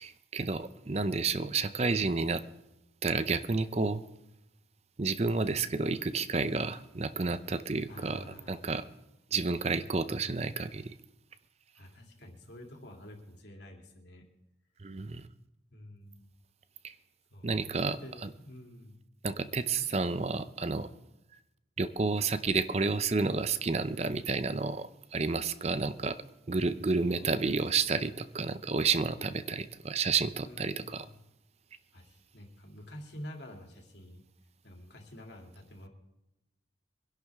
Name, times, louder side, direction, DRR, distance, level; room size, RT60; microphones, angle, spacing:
voice 1, 0.0-2.4 3.0-4.0 5.0-8.8 9.3-10.9 14.8-15.2 16.8-16.9 17.4-18.3 19.2-20.9 21.8-26.2 26.5-31.1, right 4 dB, 35° right, 13 dB, 0.6 m, -30 dB
voice 2, 7.9-8.8 9.7-10.3 11.7-14.3 15.7-16.3 17.3-19.0 19.4-19.9 27.0-27.5 30.4-31.1 31.9-34.2 34.6-35.9, left 1 dB, 65° left, 2 dB, 2.8 m, -49 dB
24.0 x 11.5 x 3.6 m, 0.90 s
head